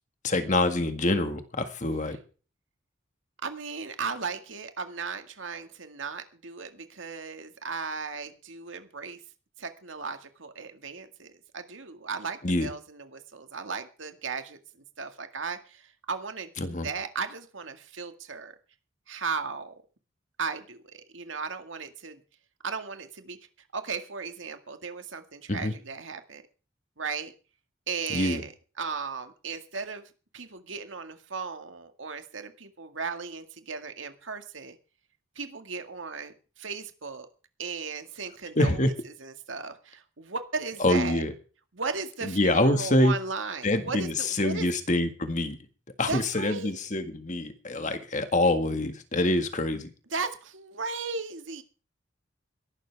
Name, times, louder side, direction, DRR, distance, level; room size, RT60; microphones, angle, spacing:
voice 1, 0.2-2.2 12.4-12.7 16.6-16.9 25.5-25.7 28.1-28.4 38.6-38.9 40.8-41.3 42.2-43.1 43.6-45.6 46.0-49.9, left 1 dB, 40° left, 8 dB, 1.8 m, -25 dB
voice 2, 3.4-9.2 9.6-14.6 15.0-18.5 19.1-19.7 20.4-22.2 22.6-23.4 23.7-26.4 27.0-27.3 27.9-28.5 28.8-30.0 30.3-34.8 35.4-37.3 37.6-38.9 39.2-41.2 41.7-44.7 46.1-46.7 50.1-51.6, right 5 dB, 90° right, 7 dB, 2.0 m, -36 dB
22.0 x 12.0 x 3.5 m, 0.37 s
head